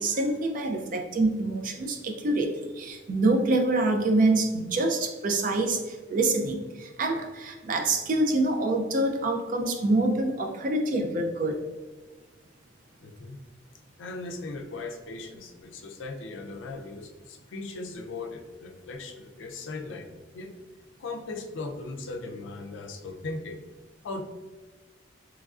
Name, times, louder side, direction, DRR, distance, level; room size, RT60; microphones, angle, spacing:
voice 1, 0.0-11.6, right 2 dB, 45° right, 4 dB, 0.3 m, -26 dB
voice 2, 13.0-13.4 14.0-20.5 21.0-23.6 24.0-24.2, left 3 dB, 80° left, 4 dB, 0.4 m, -38 dB
3.1 x 2.4 x 2.3 m, 1.3 s
head